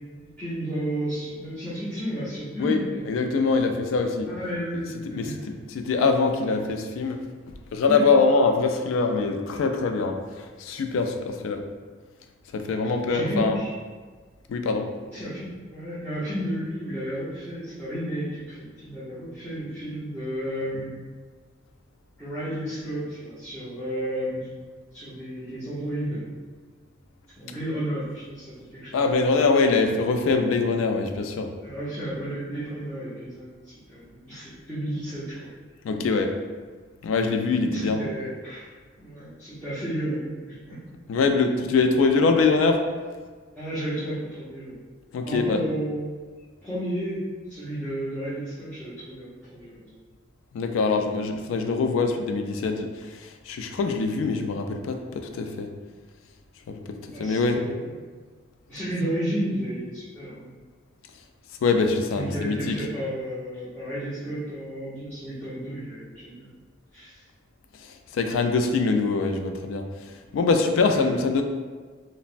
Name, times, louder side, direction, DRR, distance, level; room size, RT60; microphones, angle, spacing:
voice 1, 0.1-3.1 4.3-5.7 7.9-8.0 12.8-13.7 15.1-15.5 15.7-20.9 22.2-24.5 24.9-26.2 27.4-29.0 31.6-35.5 37.7-38.7 38.9-40.8 43.5-44.8 45.2-46.1 46.6-47.2 47.5-50.0 57.1-57.9 58.6-60.5 62.1-66.5 66.9-67.2 70.9-71.1, right 1 dB, 10° left, -15 dB, 0.7 m, -32 dB
voice 2, 3.1-4.3 5.1-7.2 7.7-11.6 12.5-13.6 14.5-14.9 28.9-31.5 35.8-36.3 37.0-38.0 41.1-42.8 45.1-45.6 50.5-55.7 56.7-57.6 61.6-62.8 67.7-71.4, left 4 dB, 85° left, 5 dB, 0.3 m, -23 dB
3.2 x 2.0 x 2.5 m, 1.5 s
head